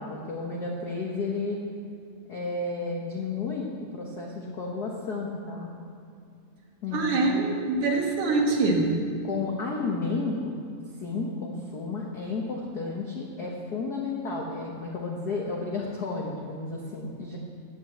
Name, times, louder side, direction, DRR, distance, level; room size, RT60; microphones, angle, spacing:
voice 1, 0.0-1.6 2.3-5.7 6.8-7.5 9.2-10.6 11.0-17.4, left 3 dB, 70° left, -1 dB, 0.9 m, -32 dB
voice 2, 6.9-8.8, right 3 dB, 75° right, 0 dB, 2.8 m, -24 dB
10.0 x 8.7 x 7.8 m, 2.4 s
omnidirectional pair, 3.3 m